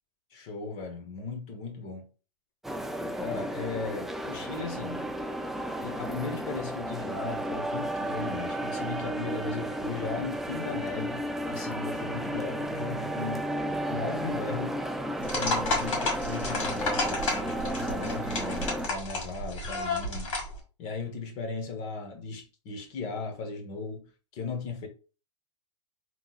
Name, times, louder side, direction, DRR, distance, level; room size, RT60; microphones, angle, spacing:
voice 1, 0.3-2.1 3.0-5.1 5.7-13.5 13.9-14.8 15.2-20.3 20.8-24.9, left 4 dB, 45° left, 1.2 m, -37 dB
sound 1, 2.6-18.9, right 1 dB, ahead, 0.3 m, -33 dB
sound 2, 15.2-20.6, left 2 dB, 80° left, 1.6 m, -31 dB
3.5 x 3.0 x 2.4 m
hypercardioid pair, 110°, 16 cm